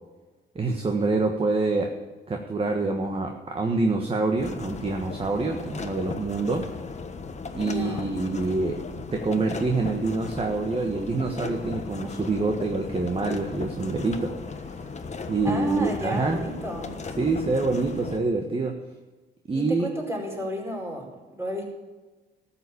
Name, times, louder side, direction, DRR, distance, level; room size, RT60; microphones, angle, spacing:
voice 1, 0.5-1.9 2.3-6.7 7.5-8.8 9.1-14.3 14.6-14.7 15.3-16.4 17.2-18.8 19.5-19.9, right 3 dB, 30° right, 3 dB, 1.5 m, -26 dB
sound 1, 4.4-18.2, left 4 dB, 35° left, 1.3 m, -37 dB
voice 2, 7.6-8.2 15.4-17.0 19.5-21.6, equal, 15° right, -1 dB, 4.7 m, -32 dB
13.5 x 7.1 x 8.6 m, 1.2 s
cardioid pair, 90°, 20 cm